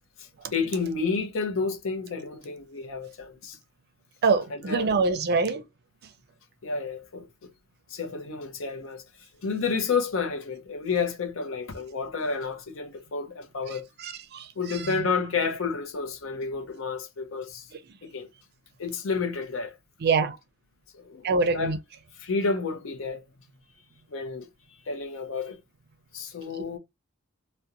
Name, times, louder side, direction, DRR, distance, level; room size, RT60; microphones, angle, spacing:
voice 1, 0.2-3.6 4.5-4.9 6.6-7.5 7.9-13.9 14.6-17.7 18.0-18.3 18.8-19.7 20.9-21.8 22.2-23.2 24.1-24.5 24.9-25.6 26.1-26.8, left 4 dB, 70° left, 0.6 m, -30 dB
voice 2, 4.2-5.6 13.7-15.0 20.0-20.4 21.2-21.8 26.5-26.7, right 4 dB, 55° right, 0.5 m, -26 dB
2.4 x 2.1 x 2.8 m
head